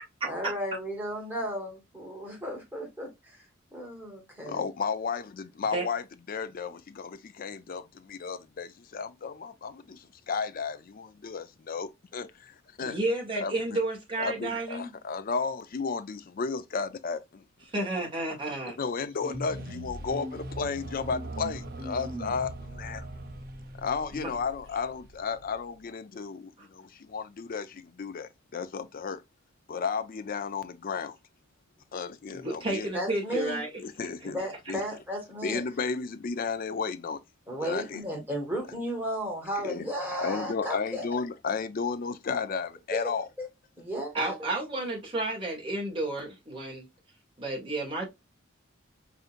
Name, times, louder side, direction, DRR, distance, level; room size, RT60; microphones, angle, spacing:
voice 1, 0.2-3.4 3.7-4.6 32.9-33.6 34.2-35.6 37.5-41.0 42.9-43.1 43.4-43.5 43.8-44.3, equal, 10° right, 1.7 m, -34 dB
voice 2, 4.4-12.3 12.8-13.0 13.4-13.8 14.2-17.4 18.8-23.1 23.8-29.2 29.7-31.2 31.9-32.9 33.8-34.4 34.7-34.8 35.4-37.2 37.6-38.0 39.6-39.9 40.2-43.3, left 5 dB, 45° left, 0.4 m, -33 dB
voice 3, 12.8-14.9 17.7-18.8 24.1-24.3 32.3-33.7 44.1-46.9 47.4-48.1, right 2 dB, 25° right, 1.6 m, -31 dB
sound 1, 19.2-25.8, right 1 dB, 45° right, 0.8 m, -40 dB
5.0 x 2.8 x 2.4 m
head